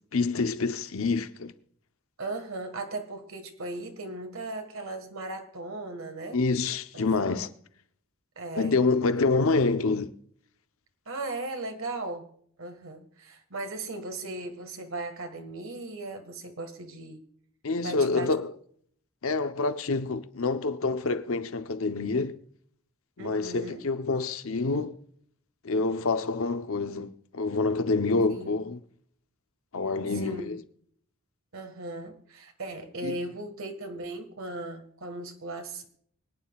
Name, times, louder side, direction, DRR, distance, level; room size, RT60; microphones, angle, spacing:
voice 1, 0.1-1.5 6.3-7.5 8.5-10.1 17.6-18.5 19.2-22.4 23.2-24.9 25.6-28.8 29.7-30.6 33.0-33.1, left 3 dB, 75° left, 0.8 m, -27 dB
voice 2, 2.2-6.4 6.9-7.3 8.3-8.7 11.0-12.3 12.6-17.2 17.8-18.3 23.2-23.8 28.3-28.6 30.1-30.5 31.5-35.9, right 2 dB, 70° right, 1.7 m, -37 dB
25.0 x 9.3 x 2.4 m
head